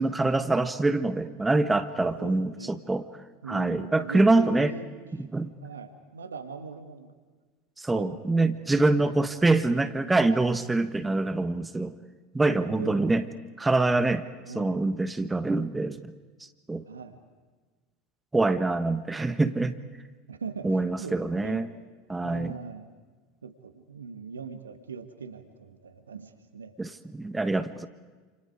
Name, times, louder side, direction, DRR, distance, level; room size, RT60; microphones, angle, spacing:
voice 1, 0.0-3.0 3.5-4.7 5.3-5.5 7.8-11.9 12.3-13.2 13.6-14.2 14.5-16.1 16.7-16.8 18.3-19.7 20.6-21.7 22.1-22.5 26.8-27.9, right 2 dB, 10° right, 11 dB, 1.3 m, -25 dB
voice 2, 2.2-2.8 3.4-4.9 5.1-5.3 5.6-7.1 7.9-8.5 8.9-9.2 12.7-13.3 14.5-14.8 16.9-17.2 20.3-21.7 22.2-22.9 23.4-26.7, right 5 dB, 85° right, 9 dB, 1.8 m, -41 dB
29.5 x 28.5 x 4.9 m, 1.4 s
hypercardioid pair, 80°, 0 cm